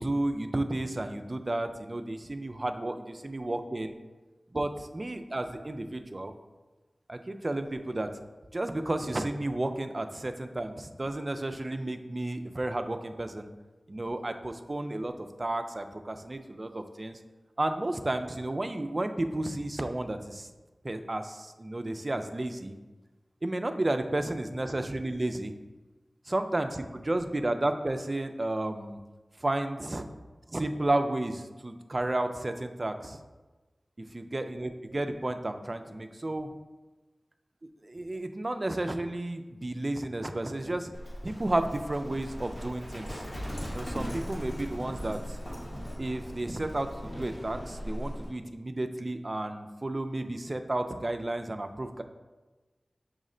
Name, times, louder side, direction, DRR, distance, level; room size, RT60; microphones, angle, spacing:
voice 1, 0.0-4.0 4.5-6.3 7.1-8.1 8.5-13.5 13.9-17.2 17.6-20.5 20.8-22.8 23.4-25.6 26.3-29.0 29.4-30.0 30.5-33.2 34.0-36.5 37.8-40.9 41.2-43.2 43.7-45.4 46.0-52.0, right 1 dB, 40° right, 7 dB, 0.3 m, -32 dB
Livestock farm animals working animals, 40.9-48.3, equal, 60° left, 1.2 m, -39 dB
6.1 x 2.1 x 3.7 m, 1.2 s
wide cardioid pair, 65°, 0 cm